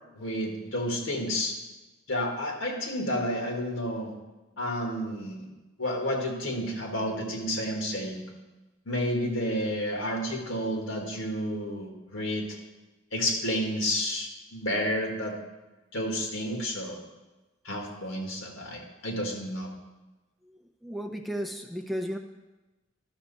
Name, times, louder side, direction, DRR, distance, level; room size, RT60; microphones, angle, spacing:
voice 1, 0.1-1.6 2.1-4.1 4.6-5.5 5.8-8.3 8.9-12.5 13.1-15.3 15.9-17.0 17.6-19.7, equal, 75° left, 1 dB, 1.8 m, -30 dB
voice 2, 20.5-22.2, equal, ahead, 4 dB, 0.4 m, -34 dB
11.5 x 6.5 x 4.1 m, 1.1 s
head